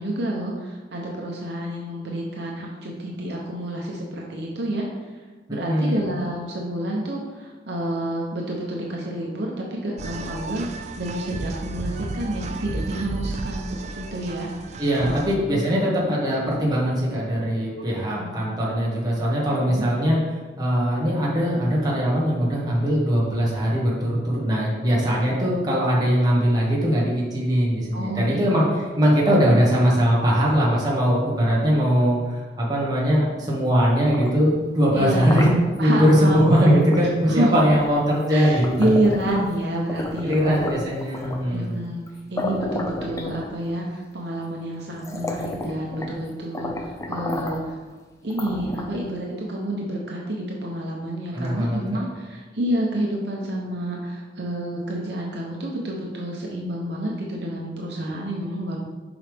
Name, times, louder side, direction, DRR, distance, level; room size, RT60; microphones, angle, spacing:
voice 1, 0.0-4.9 5.5-14.7 15.0-15.2 18.2-18.4 19.5-19.9 27.9-28.4 34.9-35.4 35.8-36.4 37.3-37.6 38.3-40.6 41.5-42.0 42.3-47.8 48.2-58.8, right 1 dB, 70° right, -2 dB, 0.9 m, -28 dB
voice 2, 5.5-6.1 14.8-35.5 35.8-38.9 40.2-41.7 51.3-52.0, equal, 20° right, -5 dB, 1.5 m, -21 dB
sound 1, 10.0-15.4, right 2 dB, 40° right, 0.4 m, -33 dB
sound 2, 33.9-36.0 36.9-37.1 37.5-39.6 39.9-41.5 42.1-42.2 42.4-43.9 44.5-44.6 45.0-46.2 46.5-47.7 48.3-49.1, left 1 dB, 15° left, 0.5 m, -32 dB
7.1 x 5.0 x 3.5 m, 1.3 s
head